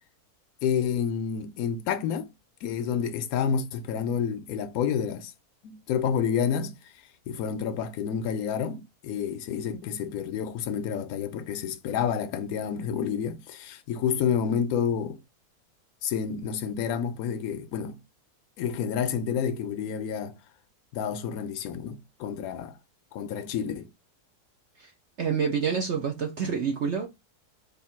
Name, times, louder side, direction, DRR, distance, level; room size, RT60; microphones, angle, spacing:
voice 1, 0.6-2.3 2.6-5.3 5.6-6.8 7.3-15.2 16.0-18.0 18.6-20.4 20.9-22.8 23.1-23.9, left 7 dB, 70° left, 1.0 m, -29 dB
voice 2, 25.2-27.1, right 6 dB, 55° right, 0.9 m, -27 dB
3.5 x 2.7 x 4.2 m
omnidirectional pair, 1.7 m